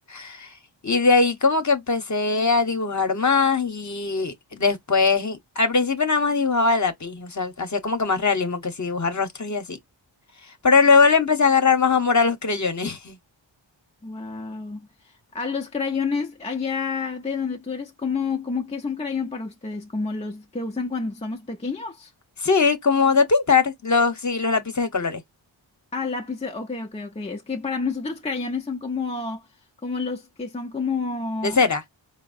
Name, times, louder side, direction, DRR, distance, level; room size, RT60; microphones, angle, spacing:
voice 1, 0.1-0.5 0.8-9.8 10.6-13.2 22.4-25.2 31.4-31.8, left 4 dB, 40° left, 0.8 m, -21 dB
voice 2, 14.0-22.1 25.9-29.4 29.8-31.6, left 4 dB, 15° left, 0.5 m, -29 dB
4.5 x 2.0 x 2.4 m
wide cardioid pair, 115°, 47 cm